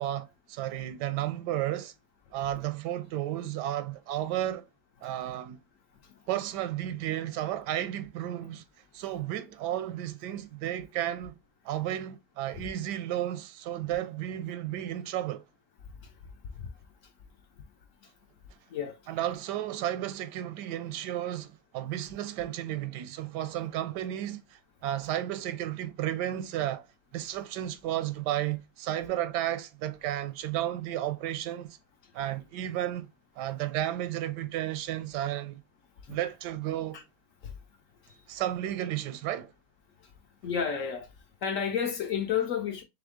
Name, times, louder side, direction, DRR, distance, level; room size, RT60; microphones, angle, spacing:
voice 1, 0.0-1.9 2.3-4.7 5.0-5.6 6.3-8.6 8.9-11.4 11.6-15.4 19.1-26.9 27.1-31.8 32.1-33.1 33.4-35.6 36.1-37.0 38.3-39.5, right 12 dB, 85° right, 1.2 m, -33 dB
voice 2, 40.4-41.1 41.4-42.8, left 7 dB, 60° left, 0.9 m, -31 dB
3.5 x 3.5 x 3.5 m
omnidirectional pair, 1.8 m